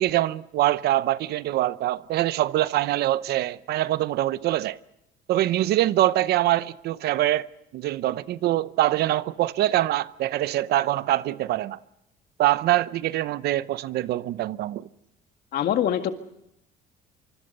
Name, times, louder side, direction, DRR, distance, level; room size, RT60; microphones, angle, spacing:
voice 1, 0.0-4.8 5.3-7.5 7.7-11.8 12.4-14.9, right 14 dB, 70° right, 0.8 m, -24 dB
voice 2, 15.5-16.1, left 10 dB, 65° left, 1.9 m, -23 dB
25.5 x 24.5 x 5.4 m
cardioid pair, 110°, 17 cm